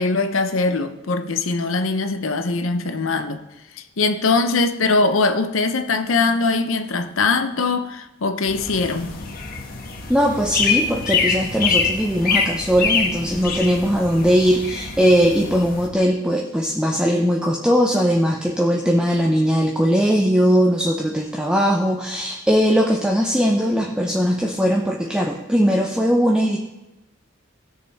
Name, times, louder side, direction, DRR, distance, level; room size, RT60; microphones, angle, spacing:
voice 1, 0.0-3.5 3.7-9.2, left 3 dB, 80° left, 0.7 m, -21 dB
sound 1, 8.5-15.9, left 5 dB, 45° left, 1.2 m, -25 dB
voice 2, 10.1-26.6, equal, 5° right, 0.6 m, -19 dB
16.5 x 6.5 x 3.5 m
head